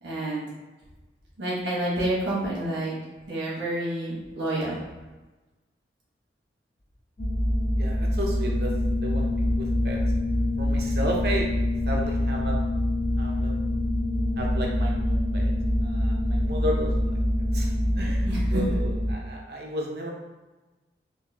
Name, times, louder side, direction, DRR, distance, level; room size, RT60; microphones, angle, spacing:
voice 1, 0.0-0.4 1.4-2.9 3.3-4.8 18.3-18.6, right 1 dB, 90° right, -6 dB, 1.4 m, -29 dB
sound 1, 7.2-19.1, left 1 dB, 35° left, 0.6 m, -25 dB
voice 2, 7.8-10.0 10.6-11.5 11.9-12.6 13.2-13.7 14.4-15.5 15.8-17.2 17.5-20.1, right 1 dB, 60° right, -1 dB, 0.6 m, -33 dB
3.7 x 2.7 x 2.8 m, 1.2 s
head